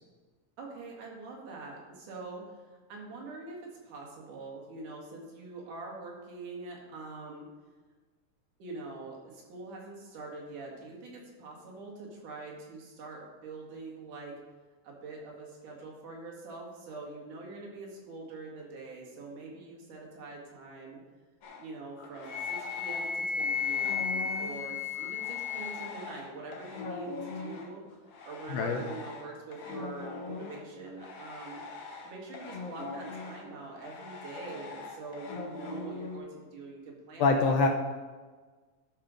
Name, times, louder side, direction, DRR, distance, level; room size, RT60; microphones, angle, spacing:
voice 1, 0.6-7.5 8.6-14.3 14.8-21.0 21.6-27.8 28.2-31.6 32.0-37.7, right 3 dB, 85° right, -1 dB, 3.5 m, -44 dB
sound 1, 21.4-23.1 23.4-36.2, left 3 dB, 60° left, 2.1 m, -42 dB
Wind instrument woodwind instrument, 22.3-25.9, left 6 dB, 40° left, 2.7 m, -33 dB
voice 2, 28.5-28.8 37.2-37.7, left 4 dB, 75° left, 4 dB, 1.6 m, -24 dB
12.5 x 5.4 x 5.1 m, 1.4 s
omnidirectional pair, 3.5 m